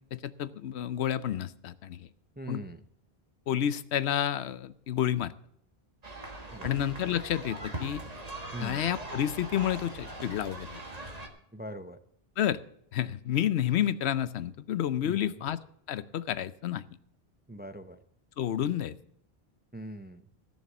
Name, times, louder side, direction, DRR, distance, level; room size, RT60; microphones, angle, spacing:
voice 1, 0.1-2.1 2.5-2.6 3.5-5.3 6.6-8.0 8.6-10.8 12.4-12.6 12.9-15.6 15.9-16.8 18.4-18.9, left 10 dB, 85° left, 16 dB, 0.9 m, -30 dB
voice 2, 2.4-2.8 6.5-6.8 8.5-8.8 11.5-12.0 15.0-15.4 17.5-18.0 19.7-20.3, right 1 dB, 15° right, 10 dB, 0.4 m, -41 dB
sound 1, 6.0-11.3, right 1 dB, 40° right, 1.7 m, -41 dB
14.5 x 6.5 x 7.2 m, 0.71 s
omnidirectional pair, 1.1 m